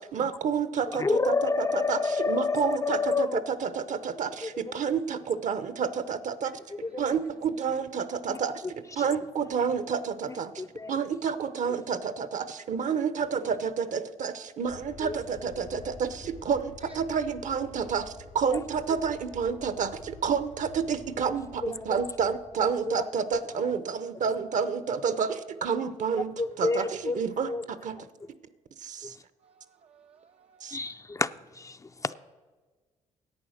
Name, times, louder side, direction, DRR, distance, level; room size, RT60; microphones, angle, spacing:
voice 1, 0.0-6.6 7.0-10.6 10.9-28.0 28.8-29.2 30.6-30.8, right 6 dB, 60° right, 0.8 m, -30 dB
voice 2, 1.0-3.4 4.4-4.8 6.7-7.1 8.3-8.4 10.6-10.9 15.0-15.1 18.5-18.6 21.6-21.8 22.6-23.0 26.4-27.2 27.4-27.6 27.9-28.1 29.0-29.1 30.7-32.2, left 3 dB, 20° left, 0.4 m, -29 dB
Aircraft, 14.7-23.0, left 5 dB, 90° left, 2.2 m, -49 dB
voice 3, 29.4-30.8, right 6 dB, 45° right, 0.4 m, -60 dB
10.5 x 8.5 x 6.4 m
supercardioid pair, 65°, 14 cm